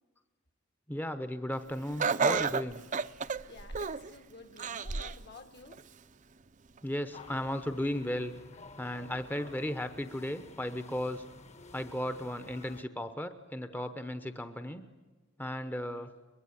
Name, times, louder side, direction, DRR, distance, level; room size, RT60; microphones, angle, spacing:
voice 1, 0.9-2.8 6.8-8.3 8.8-11.2 11.7-14.8 15.4-16.1, left 1 dB, 10° left, 10 dB, 0.9 m, -35 dB
Laughter, 2.0-4.1 4.6-5.2 5.7-5.8 6.8-6.9, right 5 dB, 40° right, 0.7 m, -31 dB
voice 2, 3.5-5.8, left 3 dB, 60° left, 8 dB, 2.1 m, -52 dB
sound 1, 7.1-12.8, left 3 dB, 35° left, 1.4 m, -52 dB
24.0 x 21.0 x 9.8 m, 1.4 s
head